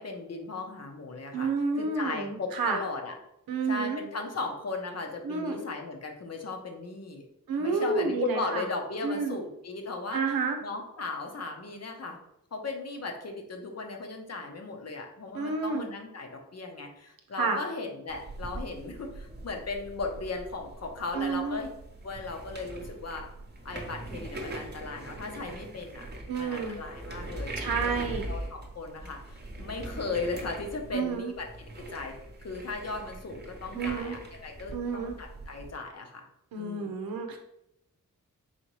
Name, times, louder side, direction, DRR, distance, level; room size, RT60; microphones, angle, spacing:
voice 1, 0.0-1.5 1.8-3.1 3.7-7.2 7.6-10.2 10.6-12.2 12.5-21.7 22.0-23.3 23.6-26.0 26.4-27.5 27.8-31.5 31.9-32.1 32.4-36.3 36.6-36.9, left 3 dB, 50° left, 2 dB, 0.8 m, -37 dB
voice 2, 1.3-2.8 3.5-4.0 5.2-5.6 7.5-8.6 9.0-9.4 10.1-10.6 15.3-15.8 17.4-17.6 21.1-21.6 26.3-26.8 27.6-28.3 30.9-31.3 33.7-34.2 34.7-35.2 36.5-37.4, right 4 dB, 85° right, 4 dB, 0.7 m, -30 dB
sound 1, 18.1-35.7, right 1 dB, 30° right, 0.9 m, -42 dB
4.2 x 2.8 x 3.0 m, 0.82 s
cardioid pair, 60°, 34 cm